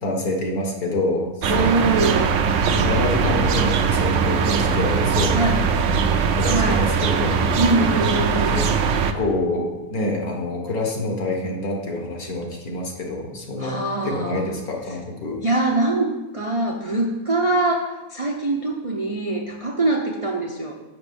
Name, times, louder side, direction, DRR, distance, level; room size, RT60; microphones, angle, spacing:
voice 1, 0.0-2.2 2.7-5.6 6.4-7.4 8.5-8.7 9.1-15.4, left 2 dB, 65° left, 1 dB, 1.9 m, -27 dB
sound 1, 1.4-9.1, right 5 dB, 65° right, 0.8 m, -20 dB
voice 2, 1.5-2.4 5.3-5.6 6.4-6.9 7.5-8.6 13.6-14.5 15.4-20.7, right 2 dB, 40° right, 0 dB, 0.5 m, -23 dB
6.9 x 6.0 x 6.9 m, 1.1 s
omnidirectional pair, 1.7 m